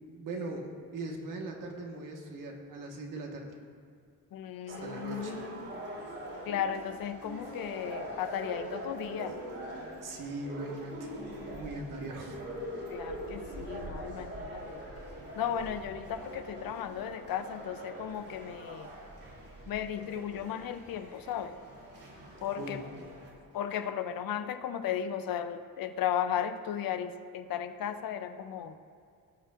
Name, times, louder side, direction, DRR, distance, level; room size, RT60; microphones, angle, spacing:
voice 1, 0.2-3.5 4.7-5.3 10.0-11.1 11.5-12.4 22.6-23.0, right 2 dB, 70° right, 1 dB, 1.6 m, -40 dB
voice 2, 4.3-5.7 6.5-9.4 12.9-14.8 15.3-18.9 19.7-21.5 22.4-22.8 23.5-28.7, left 9 dB, 90° left, 10 dB, 0.7 m, -35 dB
sound 1, 4.7-23.3, right 1 dB, 45° right, 2.8 m, -43 dB
18.5 x 9.2 x 2.6 m, 2.4 s
wide cardioid pair, 175°, 34 cm